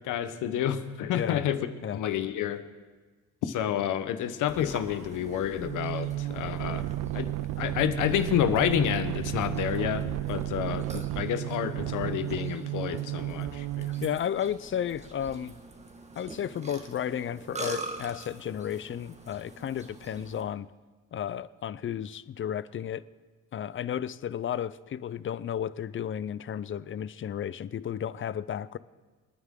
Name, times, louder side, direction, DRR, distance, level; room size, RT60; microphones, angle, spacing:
voice 1, 0.0-1.7 1.9-2.6 3.4-6.8 7.1-13.9, left 10 dB, 85° left, 10 dB, 1.0 m, -29 dB
voice 2, 1.1-1.4 1.8-2.0 14.0-15.6 16.2-20.7 21.1-23.0 23.5-28.8, left 9 dB, 40° left, 18 dB, 0.5 m, -33 dB
Burping eructation, 4.5-20.4, right 2 dB, 20° right, 1.6 m, -44 dB
sound 1, 5.6-14.2, right 15 dB, 85° right, 0.5 m, -33 dB
28.0 x 9.6 x 3.8 m, 1.4 s
cardioid pair, 90°, 30 cm